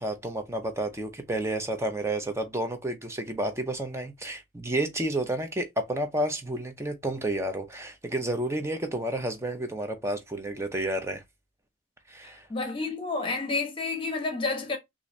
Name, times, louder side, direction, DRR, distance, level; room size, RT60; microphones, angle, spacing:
voice 1, 0.0-11.2 12.1-12.5, right 1 dB, 15° right, 0.6 m, -31 dB
voice 2, 12.5-14.8, left 3 dB, 25° left, 1.0 m, -30 dB
3.8 x 2.6 x 3.0 m
head